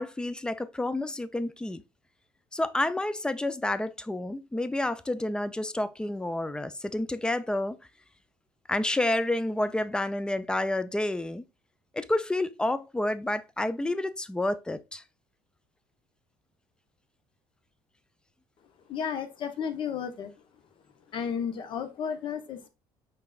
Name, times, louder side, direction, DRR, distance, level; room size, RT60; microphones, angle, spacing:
voice 1, 0.0-1.8 2.5-7.8 8.7-11.4 11.9-15.0, left 1 dB, 10° left, 0.4 m, -29 dB
voice 2, 18.9-20.3 21.1-22.7, left 7 dB, 50° left, 0.9 m, -33 dB
5.5 x 4.0 x 2.3 m
cardioid pair, 110°, 11 cm